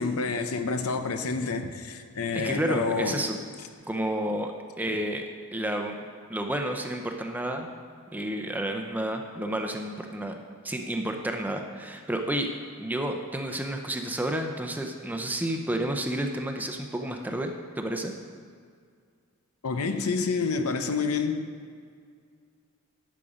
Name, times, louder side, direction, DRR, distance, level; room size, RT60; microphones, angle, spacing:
voice 1, 0.0-3.2 4.8-5.0 19.6-21.4, left 4 dB, 85° left, 8 dB, 0.7 m, -28 dB
voice 2, 2.3-3.4 3.9-4.5 4.8-5.2 5.5-6.0 6.3-7.7 8.1-10.3 10.6-12.5 12.8-18.1, right 1 dB, 10° right, 4 dB, 0.6 m, -30 dB
11.0 x 7.5 x 5.0 m, 2.1 s
head